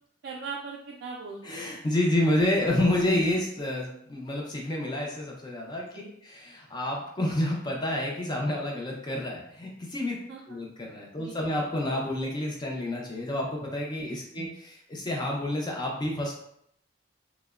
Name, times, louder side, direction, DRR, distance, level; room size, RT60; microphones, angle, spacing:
voice 1, 0.2-1.5 6.0-6.1 10.3-10.4 11.2-11.6 14.1-14.5, right 4 dB, 60° right, -3 dB, 0.3 m, -40 dB
voice 2, 1.4-10.2 10.5-16.3, left 1 dB, 25° left, -1 dB, 0.5 m, -29 dB
2.8 x 2.0 x 2.3 m, 0.70 s
head